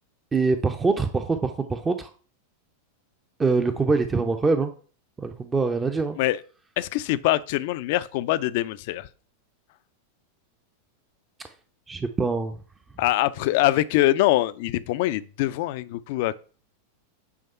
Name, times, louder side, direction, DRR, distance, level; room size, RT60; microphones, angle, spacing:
voice 1, 0.3-2.1 3.4-4.7 5.2-6.2 11.9-12.6, right 4 dB, 15° right, 0.6 m, -24 dB
voice 2, 6.8-9.1 13.0-16.3, left 16 dB, 50° left, 0.4 m, -23 dB
8.4 x 3.5 x 5.4 m
figure-of-eight pair, 90°, 0 cm